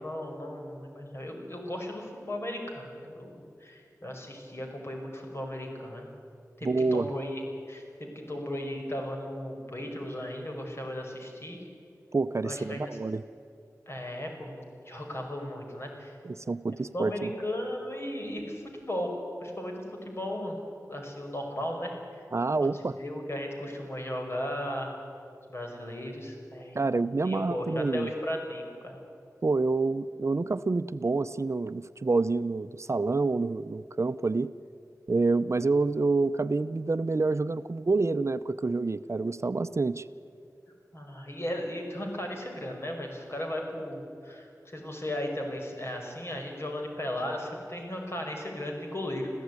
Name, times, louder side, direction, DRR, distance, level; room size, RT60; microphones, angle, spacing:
voice 1, 0.0-6.1 6.6-7.4 7.7-11.6 12.4-13.0 13.9-16.2 16.9-19.1 19.4-20.6 20.9-22.2 23.0-24.9 25.5-26.8 27.2-29.0 40.9-49.3, left 1 dB, 45° left, 2 dB, 5.5 m, -36 dB
voice 2, 6.6-7.1 12.1-13.2 16.2-17.3 22.3-23.0 26.7-28.1 29.4-34.5 35.1-40.1, right 3 dB, 50° right, 12 dB, 0.6 m, -27 dB
26.5 x 15.5 x 9.7 m, 2.5 s
wide cardioid pair, 70°, 6 cm